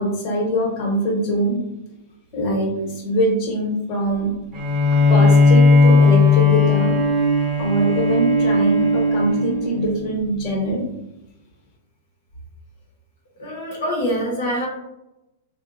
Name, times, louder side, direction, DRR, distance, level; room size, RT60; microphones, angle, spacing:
voice 1, 0.0-1.6 2.3-4.3 5.1-7.0 7.6-10.8, right 1 dB, 40° left, -2 dB, 1.0 m, -22 dB
Bowed string instrument, 4.5-10.0, left 2 dB, 30° right, 1.0 m, -16 dB
voice 2, 13.4-14.6, equal, 75° left, -3 dB, 0.7 m, -24 dB
2.7 x 2.1 x 2.5 m, 0.91 s
hypercardioid pair, 105°, 0 cm